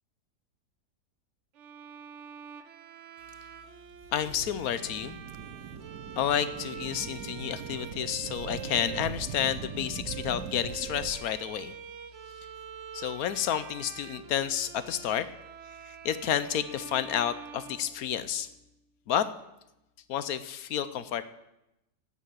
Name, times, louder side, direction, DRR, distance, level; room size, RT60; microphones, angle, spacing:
Bowed string instrument, 1.6-18.5, right 8 dB, 55° right, 0.9 m, -46 dB
sound 1, 3.9-11.2, right 8 dB, 75° right, 1.3 m, -41 dB
voice 1, 4.1-5.2 6.2-11.7 12.9-15.3 16.0-18.5 19.1-19.3 20.1-21.2, left 10 dB, 75° left, 13 dB, 1.1 m, -30 dB
9.5 x 8.4 x 8.3 m, 0.89 s
omnidirectional pair, 1.7 m